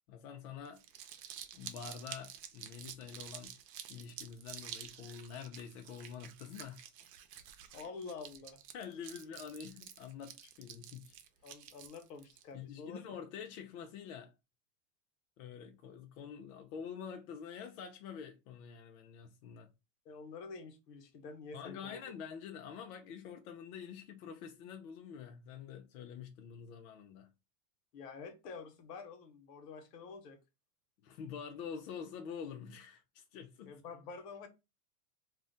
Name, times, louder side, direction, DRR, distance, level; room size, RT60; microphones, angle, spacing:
voice 1, 0.1-0.8 1.5-3.6 3.9-6.9 8.7-11.2 12.5-14.3 15.4-19.7 21.5-27.3 31.0-33.8, left 7 dB, 60° left, 0.6 m, -47 dB
Crumpling crinkling, 0.6-12.4, right 10 dB, 85° right, 0.7 m, -50 dB
voice 2, 7.7-8.6 11.4-13.0 20.0-22.0 27.9-30.4 33.7-34.5, left 4 dB, 80° left, 1.0 m, -48 dB
2.4 x 2.1 x 3.8 m
supercardioid pair, 145°, 47 cm